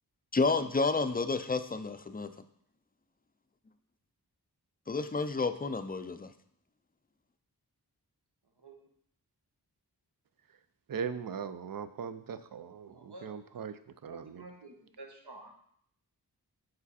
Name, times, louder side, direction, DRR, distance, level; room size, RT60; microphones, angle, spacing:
voice 1, 0.3-2.3 4.9-6.3, left 3 dB, 25° left, 10 dB, 0.4 m, -30 dB
voice 2, 10.9-14.4, right 6 dB, 60° right, 12 dB, 0.5 m, -39 dB
voice 3, 12.9-13.3 14.0-15.5, right 2 dB, 75° right, 2 dB, 1.2 m, -50 dB
6.2 x 4.9 x 4.1 m, 0.68 s
wide cardioid pair, 50°, 40 cm